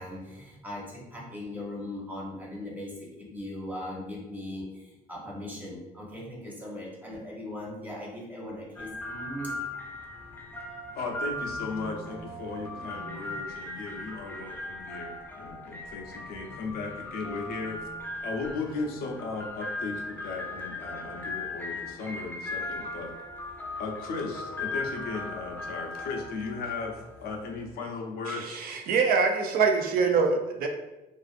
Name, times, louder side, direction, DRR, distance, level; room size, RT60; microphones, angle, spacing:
voice 1, 0.0-9.5, left 1 dB, 10° right, -4 dB, 0.8 m, -39 dB
sound 1, 8.8-27.8, left 2 dB, 10° left, 0.3 m, -38 dB
voice 2, 10.9-17.8 18.2-23.2 23.8-28.6, left 3 dB, 65° left, 1 dB, 0.5 m, -36 dB
voice 3, 28.3-30.7, right 5 dB, 60° right, 3 dB, 0.4 m, -24 dB
2.5 x 2.4 x 2.4 m, 1.0 s
cardioid pair, 110°, 17 cm